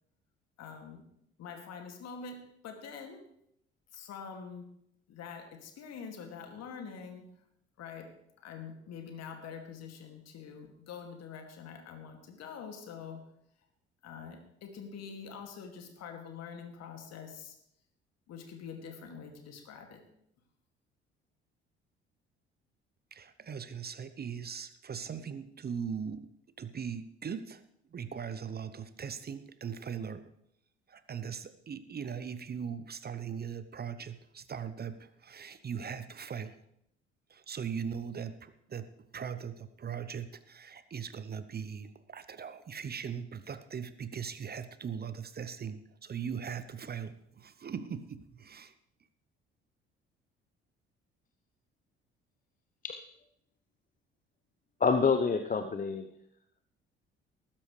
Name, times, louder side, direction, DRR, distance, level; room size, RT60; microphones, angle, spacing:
voice 1, 0.6-1.0 1.4-3.2 3.9-4.7 5.1-7.2 7.8-8.1 8.4-13.2 14.0-17.6 18.3-20.0, left 6 dB, 55° left, 4 dB, 2.4 m, -45 dB
voice 2, 23.1-26.3 26.6-27.6 27.9-30.2 30.9-36.6 37.3-38.9 39.1-48.7, right 7 dB, 30° right, 13 dB, 0.8 m, -40 dB
voice 3, 54.8-56.1, left 5 dB, 25° left, 7 dB, 0.8 m, -27 dB
19.5 x 9.9 x 3.3 m, 0.73 s
figure-of-eight pair, 50°, 31 cm